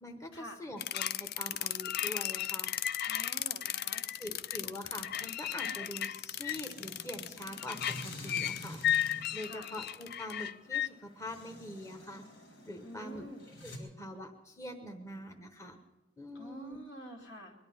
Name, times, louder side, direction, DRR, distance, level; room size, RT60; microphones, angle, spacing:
voice 1, 0.0-2.7 4.2-7.8 8.0-8.8 9.3-12.2 12.7-13.2 13.6-15.8 16.2-16.8, left 1 dB, 15° left, 3 dB, 1.0 m, -44 dB
sound 1, 0.8-10.9, left 11 dB, 55° left, 0.4 m, -35 dB
voice 2, 3.1-4.0 9.4-9.7 12.8-13.5 16.3-17.5, equal, 75° left, 0 dB, 2.6 m, -48 dB
sound 2, 4.1-13.8, left 1 dB, 90° left, 3.9 m, -50 dB
21.0 x 11.5 x 5.5 m, 0.96 s
head